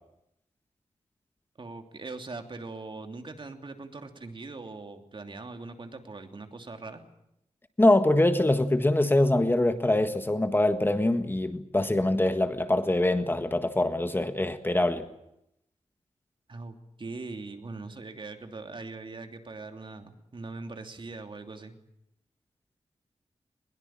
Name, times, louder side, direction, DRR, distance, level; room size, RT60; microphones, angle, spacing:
voice 1, 1.6-7.0 16.5-21.7, right 3 dB, 45° right, 6 dB, 2.9 m, -41 dB
voice 2, 7.8-15.1, left 1 dB, 20° left, 8 dB, 1.6 m, -24 dB
22.0 x 21.5 x 8.9 m, 0.80 s
wide cardioid pair, 120°, 11 cm